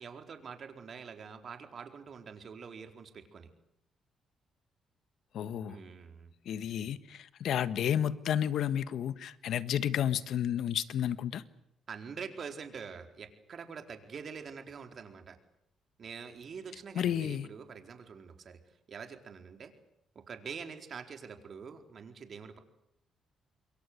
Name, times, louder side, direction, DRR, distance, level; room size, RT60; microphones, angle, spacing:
voice 1, 0.0-3.5 5.7-6.3 11.9-15.4 16.0-18.6 18.9-19.7 20.1-22.6, right 6 dB, 50° right, 4.3 m, -45 dB
voice 2, 5.3-5.8 6.4-11.4 16.9-17.5, left 9 dB, 70° left, 1.5 m, -31 dB
27.5 x 22.5 x 8.1 m
cardioid pair, 90°, 0 cm